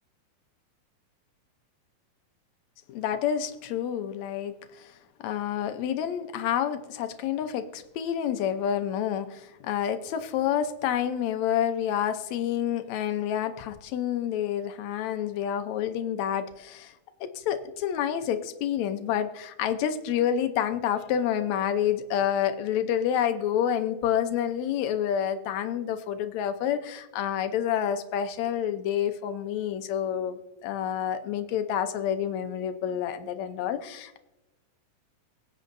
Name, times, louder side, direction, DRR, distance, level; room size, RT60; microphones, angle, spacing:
voice 1, 2.9-4.9 5.2-16.9 17.2-34.2, left 9 dB, 70° left, 9 dB, 1.9 m, -28 dB
23.0 x 8.5 x 2.6 m, 1.0 s
omnidirectional pair, 3.6 m